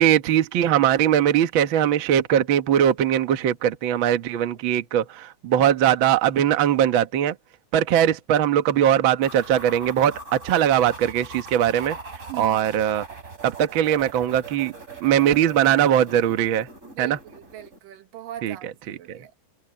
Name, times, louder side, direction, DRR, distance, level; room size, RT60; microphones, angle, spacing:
voice 1, 0.0-7.3 7.7-12.0 12.4-13.1 13.4-14.7 15.0-16.7 17.0-17.2 18.4-18.5 18.9-19.0, right 10 dB, 60° right, 1.3 m, -20 dB
sound 1, 9.2-17.8, right 3 dB, 20° right, 3.8 m, -41 dB
voice 2, 12.3-12.7 16.8-19.3, right 12 dB, 80° right, 3.0 m, -40 dB
omnidirectional pair, 3.9 m